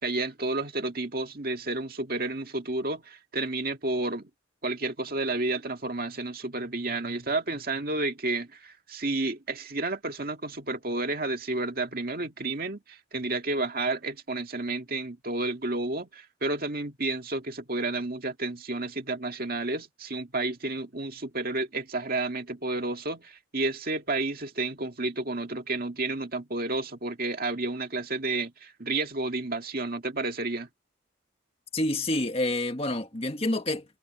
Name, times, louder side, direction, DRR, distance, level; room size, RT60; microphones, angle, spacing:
voice 1, 0.0-4.3 4.6-30.7, right 2 dB, 50° right, 2.1 m, -31 dB
voice 2, 31.7-33.8, left 1 dB, 30° left, 1.7 m, -28 dB
head